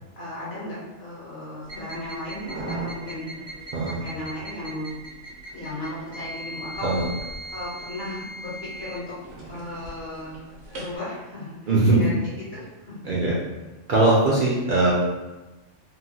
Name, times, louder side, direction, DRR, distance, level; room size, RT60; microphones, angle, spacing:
voice 1, 0.2-3.5 3.8-4.9 5.5-7.0 7.5-9.1 9.5-10.4 10.7-13.2, left 1 dB, 60° left, -7 dB, 0.9 m, -35 dB
sound 1, 1.6-11.0, right 1 dB, 75° right, 1.1 m, -38 dB
voice 2, 11.7-12.0 13.0-13.3 13.9-14.9, right 2 dB, 60° right, -6 dB, 0.5 m, -20 dB
3.0 x 2.2 x 2.6 m, 1.1 s
omnidirectional pair, 1.3 m